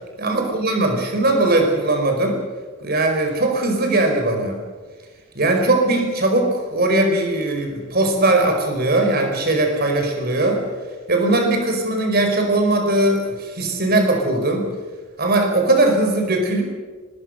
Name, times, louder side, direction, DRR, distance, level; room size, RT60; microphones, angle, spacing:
voice 1, 0.2-2.4 2.8-4.6 5.3-10.6 11.1-14.6 15.2-16.6, right 2 dB, 50° right, 4 dB, 5.1 m, -19 dB
25.0 x 21.0 x 6.7 m, 1.4 s
head